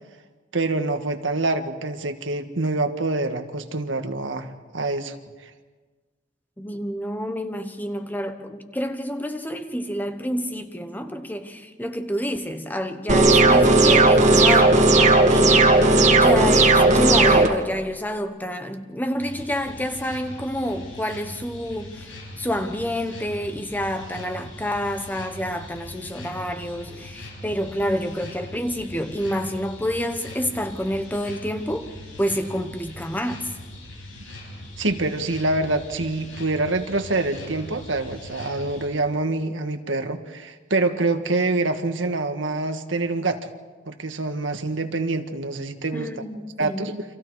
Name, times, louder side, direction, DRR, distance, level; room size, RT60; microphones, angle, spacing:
voice 1, 0.5-5.1 5.4-5.5 34.8-43.5 43.8-46.2 46.6-47.0, right 2 dB, 85° right, 1.7 m, -26 dB
voice 2, 6.6-33.5 45.9-46.9, equal, 10° left, 1.2 m, -28 dB
sound 1, 13.1-17.5, right 2 dB, 40° right, 2.1 m, -15 dB
sound 2, 19.2-38.9, left 1 dB, 85° left, 6.8 m, -41 dB
29.5 x 26.0 x 4.9 m
head